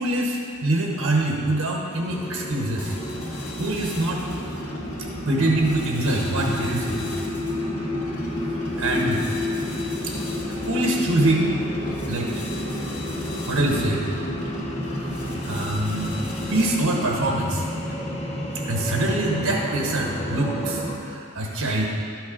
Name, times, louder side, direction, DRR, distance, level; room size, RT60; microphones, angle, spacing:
voice 1, 0.0-2.9 3.5-4.2 5.2-7.1 8.8-9.2 10.0-10.1 10.6-11.6 12.1-12.4 13.5-14.0 15.1-16.2 16.5-17.7 18.7-21.9, right 2 dB, 90° right, 0 dB, 1.1 m, -24 dB
sound 1, 1.9-21.0, left 1 dB, 30° left, 1.1 m, -30 dB
sound 2, 2.8-17.0, left 1 dB, 85° left, 1.8 m, -37 dB
11.5 x 6.3 x 5.0 m, 2.4 s
head